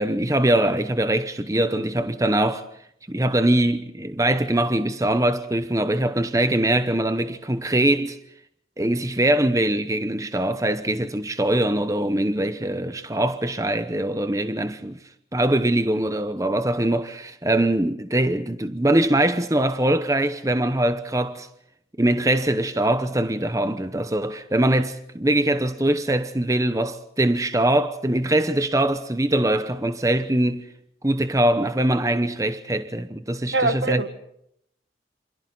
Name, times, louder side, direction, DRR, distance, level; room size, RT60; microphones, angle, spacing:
voice 1, 0.0-2.7 3.1-8.2 8.8-15.0 15.3-21.5 22.0-30.6 31.0-34.0, right 1 dB, 20° right, 0.9 m, -22 dB
voice 2, 33.5-34.1, right 3 dB, 75° right, 1.8 m, -22 dB
27.5 x 27.0 x 4.0 m
head